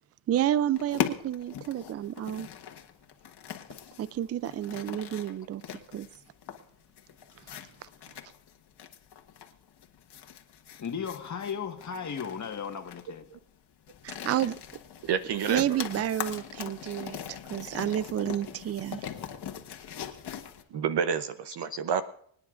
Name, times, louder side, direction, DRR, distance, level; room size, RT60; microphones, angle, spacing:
voice 1, 0.3-2.5 4.0-5.6 5.9-6.1 14.0-14.6 15.5-19.0, right 11 dB, 30° right, 0.4 m, -30 dB
sound 1, 0.8-20.6, left 8 dB, 50° left, 1.5 m, -40 dB
voice 2, 10.8-13.3 20.7-20.8 21.7-21.8, left 7 dB, 35° left, 1.5 m, -36 dB
voice 3, 15.0-15.8 20.7-22.0, right 7 dB, 55° right, 0.9 m, -29 dB
25.0 x 9.7 x 2.5 m
supercardioid pair, 75°, 50 cm